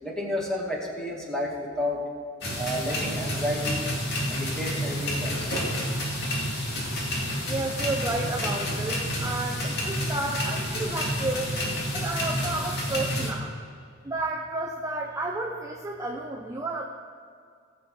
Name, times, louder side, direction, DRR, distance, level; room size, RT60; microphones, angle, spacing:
voice 1, 0.0-2.0 2.5-3.8 4.3-5.6, left 1 dB, 5° left, -3 dB, 2.2 m, -31 dB
sound 1, 2.4-13.3, equal, 60° left, 2.3 m, -29 dB
voice 2, 7.5-11.5 11.9-13.6 14.0-16.8, right 2 dB, 15° right, -2 dB, 0.8 m, -31 dB
18.5 x 7.6 x 3.9 m, 2.2 s
head